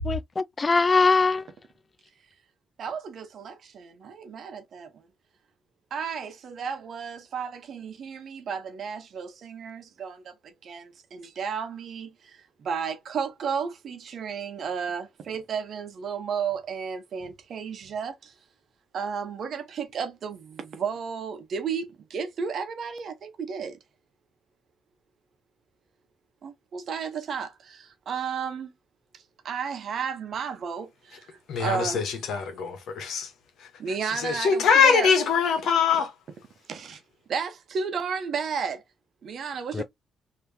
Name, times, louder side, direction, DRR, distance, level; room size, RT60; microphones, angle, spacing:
voice 1, 0.0-1.5 39.7-39.8, left 4 dB, 30° left, 0.3 m, -22 dB
voice 2, 2.8-5.0 5.9-18.3 18.9-23.8 26.4-28.7 29.1-31.3 31.6-32.1 33.8-35.1 36.7-37.0 37.3-38.8 39.2-39.8, right 6 dB, 60° right, 0.8 m, -33 dB
voice 3, 31.5-33.3 33.6-33.7 34.0-36.1, left 6 dB, 75° left, 1.2 m, -23 dB
3.4 x 2.9 x 2.8 m
cardioid pair, 90°, 0 cm